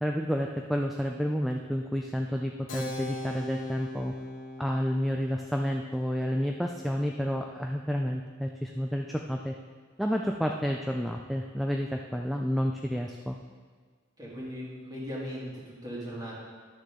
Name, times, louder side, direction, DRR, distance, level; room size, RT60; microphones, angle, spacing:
voice 1, 0.0-4.1 4.6-9.5 10.0-13.4, equal, ahead, 1 dB, 0.3 m, -30 dB
Keyboard (musical), 2.7-8.8, left 1 dB, 45° left, 1.5 m, -41 dB
voice 2, 14.2-16.4, equal, 20° right, -6 dB, 2.4 m, -38 dB
11.5 x 6.4 x 3.7 m, 1.5 s
head